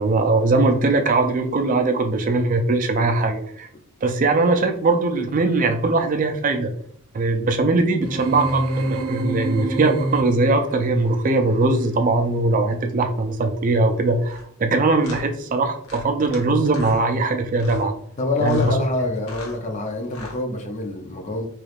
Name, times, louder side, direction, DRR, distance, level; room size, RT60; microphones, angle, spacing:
voice 1, 0.0-3.7 4.0-6.7 7.1-17.9 18.4-18.8, right 3 dB, 35° right, 0.3 m, -20 dB
sound 1, 8.0-10.7, right 1 dB, 85° right, 0.5 m, -25 dB
sound 2, 14.2-14.4 15.0-15.2 15.8-16.4 16.7-17.0 17.5-17.9 18.4-18.7 19.2-19.6 20.0-20.4, left 2 dB, 90° left, 1.0 m, -40 dB
voice 2, 18.2-21.5, left 2 dB, 35° left, 0.5 m, -25 dB
3.3 x 3.0 x 2.4 m
head